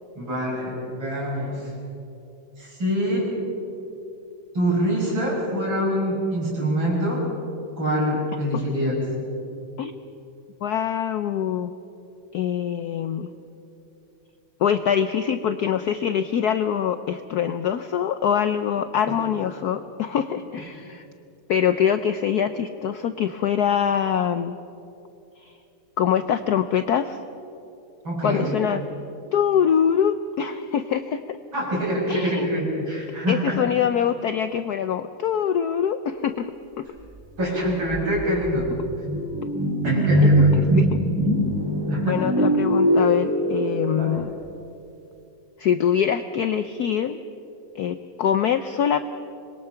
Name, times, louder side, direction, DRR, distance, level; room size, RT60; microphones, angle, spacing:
voice 1, 0.2-1.7 2.6-3.3 4.5-7.2 7.8-8.9 28.0-28.5 31.5-33.6 37.4-38.7 39.8-40.6 41.9-42.2 44.0-44.2, equal, 60° right, -4 dB, 7.0 m, -25 dB
voice 2, 10.6-11.7 12.3-13.3 14.6-21.1 21.5-24.6 25.4-25.5 26.0-27.2 28.2-28.8 29.3-31.4 32.1-32.5 33.3-36.5 36.8-36.9 40.5-41.0 42.0-44.3 45.6-47.2 47.7-49.0, left 8 dB, 85° left, 10 dB, 0.8 m, -24 dB
sound 1, 37.4-37.5 37.9-44.0, right 1 dB, 10° right, 2.6 m, -21 dB
25.5 x 21.5 x 5.7 m, 2.8 s
omnidirectional pair, 2.4 m